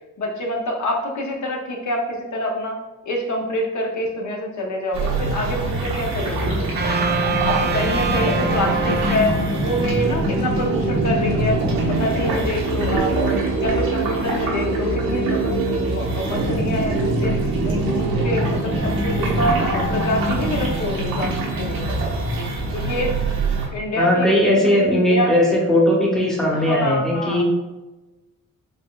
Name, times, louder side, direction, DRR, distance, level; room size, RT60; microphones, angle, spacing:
voice 1, 0.2-6.7 7.4-9.3 9.6-11.6 11.9-13.3 13.6-17.4 17.6-22.1 22.7-23.2 23.7-25.6 26.5-27.4, left 1 dB, 55° left, 0 dB, 0.6 m, -26 dB
sound 1, 4.9-23.7, right 2 dB, 85° right, 0.9 m, -23 dB
sound 2, 6.8-10.0, right 4 dB, 30° right, 0.4 m, -25 dB
voice 2, 24.0-27.4, left 1 dB, ahead, -3 dB, 0.8 m, -18 dB
4.0 x 3.3 x 2.3 m, 1.1 s
cardioid pair, 105°, 34 cm